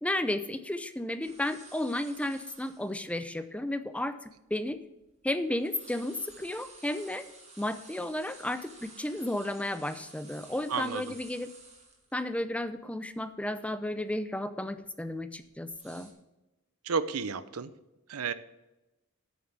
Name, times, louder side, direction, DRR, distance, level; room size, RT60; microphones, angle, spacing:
voice 1, 0.0-4.8 5.2-7.3 7.6-11.5 12.1-16.1, left 1 dB, 5° left, 11 dB, 0.5 m, -33 dB
sound 1, 1.2-3.0 3.5-3.6 4.2-5.2 5.5-12.2 12.6-12.7 13.1-13.5 13.9-14.1 14.8-16.1, right 3 dB, 30° right, 2.3 m, -53 dB
voice 2, 10.7-11.1 16.8-17.7 18.1-18.3, right 5 dB, 85° right, 14 dB, 0.7 m, -32 dB
8.8 x 7.0 x 6.6 m, 1.0 s
head